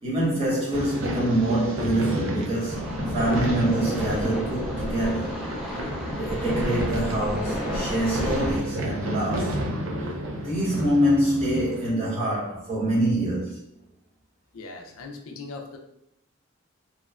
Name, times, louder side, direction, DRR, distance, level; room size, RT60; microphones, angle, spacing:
voice 1, 0.0-5.4 6.0-9.6 10.4-13.6, right 1 dB, 30° right, 0.9 m, -25 dB
sound 1, 0.7-11.9, equal, 65° right, 0.4 m, -31 dB
sound 2, 2.7-8.6, equal, ahead, 0.3 m, -31 dB
voice 2, 14.5-15.8, left 3 dB, 70° left, 0.4 m, -39 dB
2.8 x 2.2 x 2.3 m
head